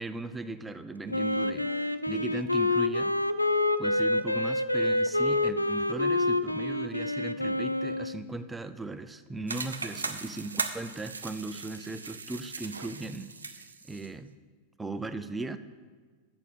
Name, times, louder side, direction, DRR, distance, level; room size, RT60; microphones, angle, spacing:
voice 1, 0.0-3.1 3.8-14.3 14.8-15.6, right 2 dB, 10° right, 11 dB, 0.5 m, -38 dB
Wind instrument woodwind instrument, 1.1-8.2, left 2 dB, 85° left, 0.3 m, -27 dB
sound 1, 9.5-14.1, right 4 dB, 75° right, 0.5 m, -38 dB
6.7 x 6.1 x 7.1 m, 1.5 s
figure-of-eight pair, 90°, 0 cm